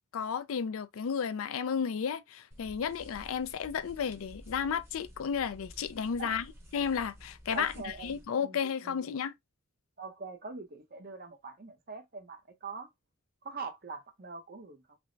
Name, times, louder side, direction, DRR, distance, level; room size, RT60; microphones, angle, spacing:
voice 1, 0.1-6.5 6.7-9.3, left 7 dB, 70° left, 0.4 m, -33 dB
sound 1, 2.5-8.2, equal, 10° right, 0.8 m, -52 dB
voice 2, 7.5-9.0 10.0-12.9 13.4-15.0, right 4 dB, 45° right, 0.7 m, -44 dB
3.4 x 2.1 x 3.8 m
head